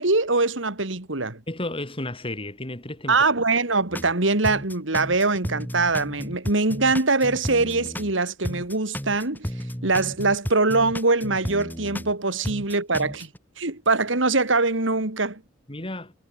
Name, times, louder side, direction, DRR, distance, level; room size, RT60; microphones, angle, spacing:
voice 1, 0.0-1.4 3.1-9.5 9.8-13.3 13.6-15.4, right 3 dB, 70° right, 2.7 m, -23 dB
voice 2, 1.5-3.2 15.7-16.1, left 1 dB, 30° left, 4.1 m, -32 dB
sound 1, 3.9-4.1 4.4-8.1 8.4-12.1 12.4-13.4, equal, 10° left, 4.7 m, -33 dB
head